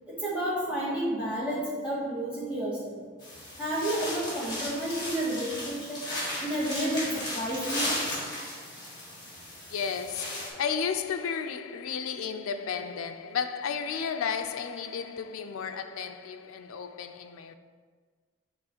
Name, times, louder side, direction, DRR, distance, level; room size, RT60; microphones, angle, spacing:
voice 1, 0.1-3.0 3.6-6.0 6.4-8.0, right 1 dB, 5° right, 1.7 m, -31 dB
sound 1, 3.2-10.5, left 1 dB, 20° left, 1.7 m, -36 dB
voice 2, 9.7-17.6, left 6 dB, 85° left, 0.4 m, -33 dB
7.8 x 3.1 x 4.4 m
head